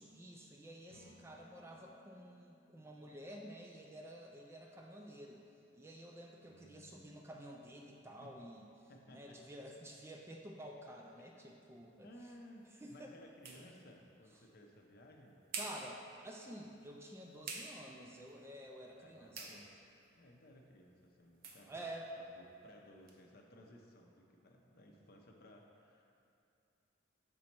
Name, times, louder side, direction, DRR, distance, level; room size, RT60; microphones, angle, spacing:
voice 1, 0.0-5.4 5.7-8.6 9.1-12.1 12.8-13.1 13.5-13.6 15.5-19.6 21.6-22.1, right 1 dB, 15° right, 0 dB, 0.3 m, -51 dB
sound 1, 0.9-4.6, left 1 dB, 70° right, 1.1 m, -66 dB
voice 2, 6.4-7.1 8.2-8.3 8.9-9.4 11.3-11.5 12.0-15.4 19.0-19.8 20.1-21.9 22.2-26.3, left 1 dB, 50° left, 1 dB, 0.6 m, -59 dB
sound 2, 11.7-23.2, right 4 dB, 50° right, 0.6 m, -53 dB
6.2 x 4.1 x 4.4 m, 2.7 s
head